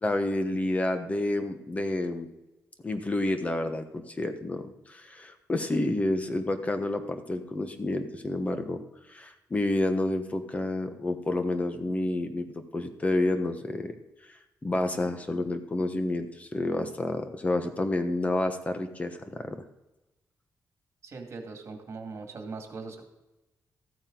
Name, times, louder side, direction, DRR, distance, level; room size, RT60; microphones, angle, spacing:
voice 1, 0.0-2.3 2.8-8.8 9.1-13.9 14.6-19.6, left 2 dB, 20° left, 8 dB, 1.1 m, -29 dB
voice 2, 21.0-23.0, right 4 dB, 45° right, 3 dB, 2.2 m, -40 dB
14.0 x 9.0 x 3.9 m, 1.0 s
wide cardioid pair, 130°, 6 cm